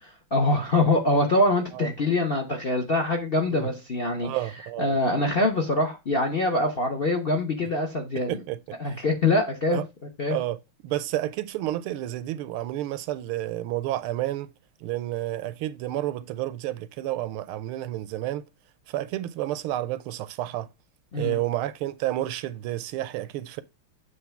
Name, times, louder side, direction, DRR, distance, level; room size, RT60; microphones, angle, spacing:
voice 1, 0.0-4.3 4.8-8.4 8.8-9.8 10.2-10.4 21.1-21.4, left 2 dB, 45° left, 0.8 m, -24 dB
voice 2, 4.2-5.0 8.3-8.6 9.7-9.8 10.3-14.5 14.8-18.5 18.9-20.7 21.1-23.6, right 14 dB, 85° right, 1.5 m, -30 dB
8.1 x 2.9 x 5.7 m
omnidirectional pair, 2.3 m